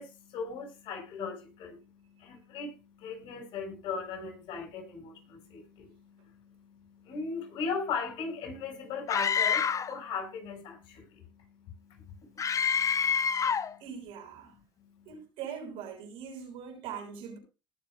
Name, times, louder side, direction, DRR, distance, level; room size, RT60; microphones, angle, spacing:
voice 1, 0.0-12.5 13.0-13.8, left 5 dB, 70° left, 7.9 m, -38 dB
Screaming, 9.1-10.0 12.4-13.7, left 7 dB, 35° left, 0.8 m, -27 dB
voice 2, 13.8-14.5 15.0-17.4, right 7 dB, 75° right, 6.6 m, -42 dB
19.5 x 7.4 x 2.7 m
supercardioid pair, 85°, 9 cm